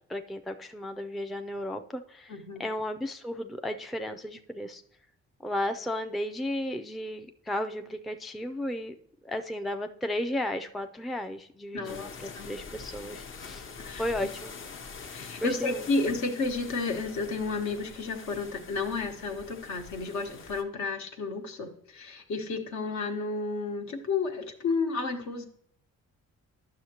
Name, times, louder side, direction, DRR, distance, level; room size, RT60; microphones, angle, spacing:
voice 1, 0.1-4.8 5.4-8.9 9.2-14.5 15.1-15.9, left 1 dB, ahead, 7 dB, 0.3 m, -34 dB
voice 2, 2.3-2.7 11.7-12.1 12.3-12.6 13.8-14.0 15.1-25.5, left 3 dB, 70° left, 4 dB, 1.1 m, -32 dB
sound 1, 11.8-20.6, left 5 dB, 40° left, 0.7 m, -45 dB
9.6 x 6.3 x 2.9 m, 0.70 s
cardioid pair, 90°, 30 cm